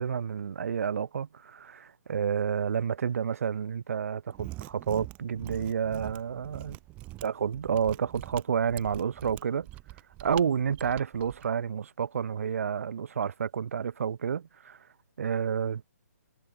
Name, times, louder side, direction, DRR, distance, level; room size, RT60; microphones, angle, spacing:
voice 1, 0.0-6.8 7.2-9.7 10.2-14.8 15.2-15.8, right 7 dB, 55° right, 1.3 m, -30 dB
Mechanisms, 4.3-11.5, right 19 dB, 15° right, 2.2 m, -44 dB
hypercardioid pair, 170°, 9 cm